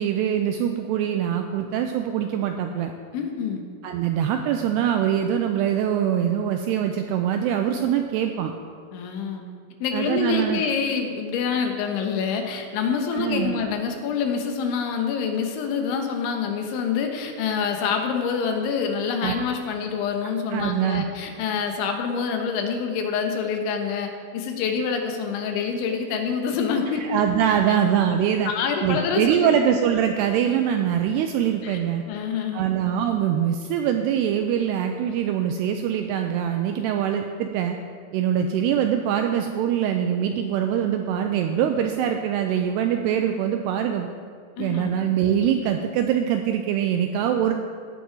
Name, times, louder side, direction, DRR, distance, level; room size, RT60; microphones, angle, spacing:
voice 1, 0.0-2.9 3.8-8.5 9.9-10.6 13.1-13.6 19.2-19.4 20.5-21.0 27.0-28.5 28.8-32.0 32.5-37.8 38.1-44.1 44.6-47.5, right 9 dB, 85° right, 5 dB, 2.4 m, -23 dB
voice 2, 3.1-3.6 8.9-9.4 9.8-27.2 27.7-27.8 28.5-29.5 31.6-31.8 32.1-32.7 44.6-44.9, left 6 dB, 85° left, 4 dB, 3.6 m, -26 dB
15.5 x 9.2 x 4.6 m, 2.1 s
omnidirectional pair, 5.3 m